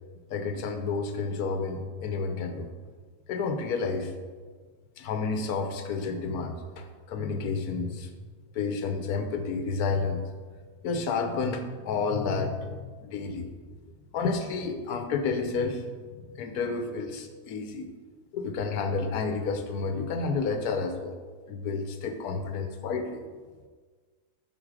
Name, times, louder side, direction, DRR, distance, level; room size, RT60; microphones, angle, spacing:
voice 1, 0.3-2.7 3.3-4.1 5.0-8.1 8.5-10.2 10.8-13.5 14.1-15.9 16.3-17.9 18.3-21.2 21.5-23.2, left 4 dB, 75° left, 6 dB, 1.3 m, -30 dB
8.7 x 6.0 x 4.9 m, 1.5 s
omnidirectional pair, 1.7 m